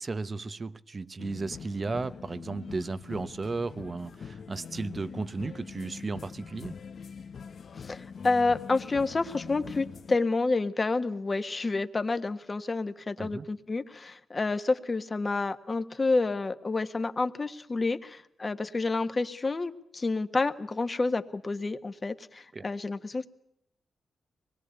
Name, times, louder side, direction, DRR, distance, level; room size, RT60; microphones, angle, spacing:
voice 1, 0.0-6.7 13.2-13.5 22.5-22.7, right 3 dB, 35° right, 0.9 m, -35 dB
sound 1, 1.2-10.2, left 6 dB, 55° left, 1.0 m, -43 dB
voice 2, 7.8-23.3, left 3 dB, 30° left, 1.5 m, -29 dB
25.0 x 21.0 x 8.2 m
cardioid pair, 115°, 0 cm